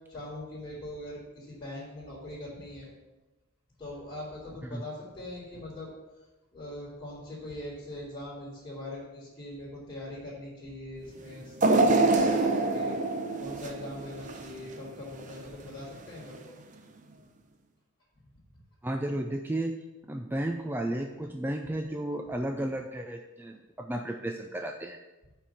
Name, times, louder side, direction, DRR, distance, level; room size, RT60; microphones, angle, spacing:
voice 1, 0.1-2.9 3.8-5.9 6.5-12.9 13.4-16.5 18.2-18.3, left 1 dB, 20° left, -12 dB, 3.3 m, -41 dB
sound 1, 11.6-14.7 15.2-15.3 16.3-16.4, right 2 dB, 35° right, 0.7 m, -25 dB
voice 2, 18.8-19.7 20.1-25.0, right 1 dB, 10° right, 4 dB, 0.3 m, -33 dB
8.7 x 4.5 x 6.9 m, 1.1 s
head